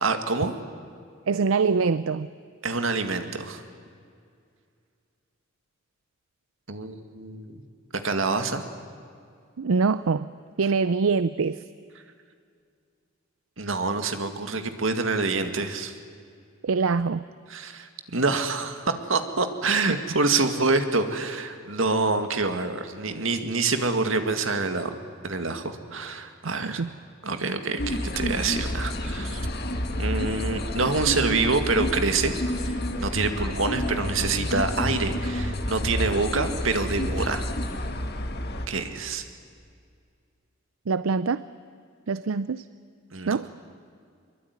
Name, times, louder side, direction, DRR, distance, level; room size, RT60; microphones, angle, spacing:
voice 1, 0.0-0.5 2.6-3.6 6.7-7.5 8.0-8.6 13.6-16.0 17.5-24.9 25.2-26.8 27.2-29.4 30.0-32.3 32.6-37.5 38.7-39.2 43.1-43.4, right 3 dB, 70° right, 7 dB, 2.1 m, -26 dB
voice 2, 1.3-2.3 9.6-10.3 10.6-11.6 16.6-17.2 26.4-26.9 40.9-41.4 42.1-42.6 43.3-43.5, right 4 dB, 90° right, 15 dB, 0.5 m, -24 dB
sound 1, 27.8-38.7, left 1 dB, 50° left, 2.1 m, -29 dB
24.0 x 22.5 x 9.7 m, 2.3 s
head